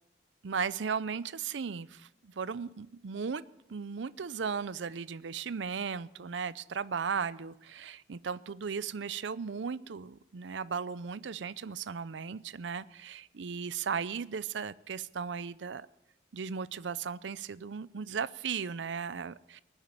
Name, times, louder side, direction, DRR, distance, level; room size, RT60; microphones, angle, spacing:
voice 1, 0.4-3.4 3.7-15.9 16.3-19.6, right 6 dB, 85° right, 17 dB, 0.5 m, -36 dB
19.5 x 7.3 x 9.8 m, 0.89 s
head